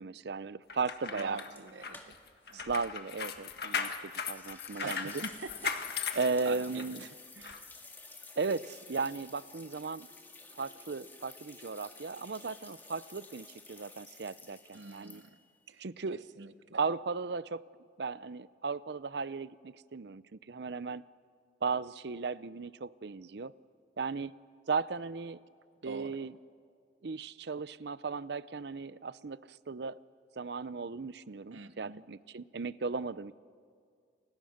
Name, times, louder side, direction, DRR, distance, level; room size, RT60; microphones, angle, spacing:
voice 1, 0.0-1.4 2.5-5.1 6.2-7.0 8.4-10.1 10.6-15.2 15.8-16.2 16.7-17.6 18.0-21.0 21.6-23.5 24.0-24.3 24.7-25.4 25.8-26.3 27.0-30.0 30.4-33.3, right 4 dB, 65° right, 17 dB, 0.6 m, -36 dB
sound 1, 0.7-7.0 7.4-7.6, left 6 dB, 60° left, 1.7 m, -38 dB
voice 2, 1.1-2.2 2.5-2.7 4.8-5.8 6.1-7.7 14.7-15.4 15.7-15.8 16.1-16.8 25.8-26.3 31.5-32.0, right 4 dB, 90° right, 11 dB, 0.9 m, -45 dB
sound 2, 1.4-2.5 2.8-2.9 4.3-15.6, left 3 dB, 10° left, 1.9 m, -52 dB
29.5 x 25.5 x 6.5 m, 2.2 s
head